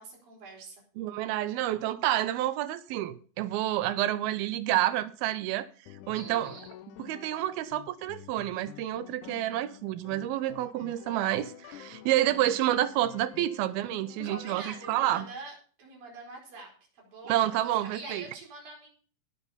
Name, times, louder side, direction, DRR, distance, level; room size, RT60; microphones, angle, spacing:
voice 1, 0.0-0.8 6.1-6.7 14.2-18.9, right 3 dB, 70° right, 6.2 m, -45 dB
voice 2, 1.0-5.7 6.1-6.5 7.0-15.3 17.3-18.2, right 13 dB, 90° right, 2.7 m, -29 dB
sound 1, 5.9-15.3, left 12 dB, 80° left, 1.8 m, -49 dB
18.5 x 6.9 x 4.1 m
omnidirectional pair, 4.3 m